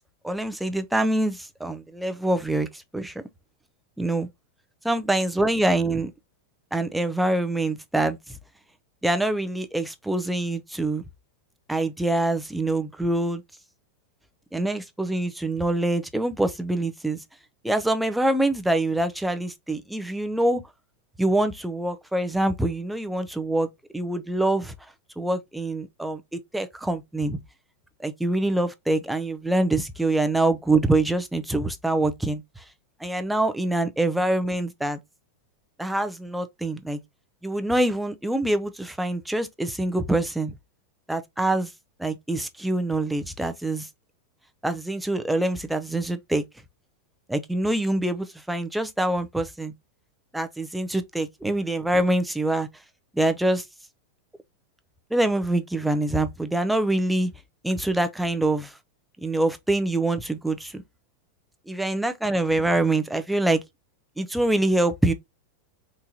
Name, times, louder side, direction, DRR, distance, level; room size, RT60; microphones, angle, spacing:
voice 1, 0.2-2.7 2.9-3.1 4.0-4.3 4.8-6.1 6.7-8.2 9.0-11.0 11.7-13.4 14.5-17.2 17.6-20.6 21.2-23.7 23.9-24.7 25.2-27.4 28.0-32.4 33.0-35.0 35.8-37.0 37.4-40.5 41.1-41.7 42.0-43.9 44.6-46.4 47.3-49.7 50.3-52.7 53.1-53.6 55.1-57.3 57.6-58.7 59.2-60.8 61.7-63.6 64.2-65.1, right 1 dB, 5° right, 0.5 m, -25 dB
3.7 x 2.8 x 2.7 m
supercardioid pair, 145°, 0 cm